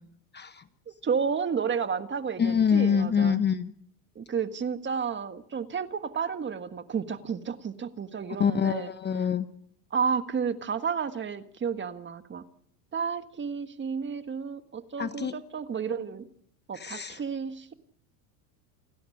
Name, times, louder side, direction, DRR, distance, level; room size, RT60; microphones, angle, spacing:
voice 1, 0.3-0.6 2.4-3.7 8.4-9.5 15.0-15.3 16.7-17.2, left 7 dB, 20° left, 11 dB, 1.0 m, -25 dB
voice 2, 1.0-3.4 4.1-8.9 9.9-12.4 12.9-16.3 16.7-17.7, right 6 dB, 25° right, 9 dB, 1.6 m, -31 dB
29.0 x 12.5 x 8.7 m, 0.67 s
supercardioid pair, 115°, 46 cm